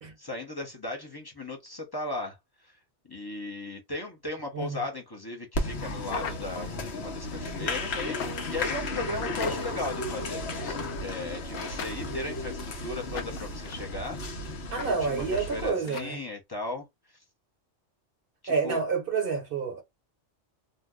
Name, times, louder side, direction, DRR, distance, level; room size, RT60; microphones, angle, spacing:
voice 1, 0.2-2.8 3.0-8.2 8.5-17.2 18.4-18.8, left 2 dB, 25° left, 0.8 m, -37 dB
voice 2, 4.5-4.8 14.7-16.2 18.5-19.8, right 5 dB, 55° right, 1.0 m, -29 dB
Applause, 5.5-15.7, left 2 dB, 65° left, 1.0 m, -34 dB
sound 1, 6.0-6.9 8.2-8.7 9.4-9.9 10.7-11.1 11.8-12.6 13.1-13.9 14.8-14.9 15.2-15.3 15.8-16.1, left 6 dB, 90° left, 0.9 m, -39 dB
2.7 x 2.1 x 3.6 m
omnidirectional pair, 1.2 m